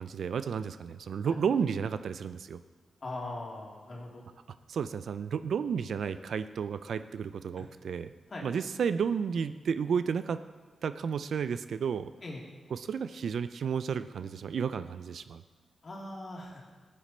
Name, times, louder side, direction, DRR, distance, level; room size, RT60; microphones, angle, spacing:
voice 1, 0.0-2.6 4.7-8.1 8.4-10.4 10.8-12.1 12.7-15.4, right 6 dB, 75° right, 13 dB, 0.4 m, -32 dB
voice 2, 3.0-4.2 7.6-7.7 8.3-8.5 12.2-12.4 15.8-16.7, left 2 dB, 50° left, -2 dB, 2.9 m, -40 dB
13.0 x 8.6 x 4.3 m, 1.4 s
cardioid pair, 65°, 0 cm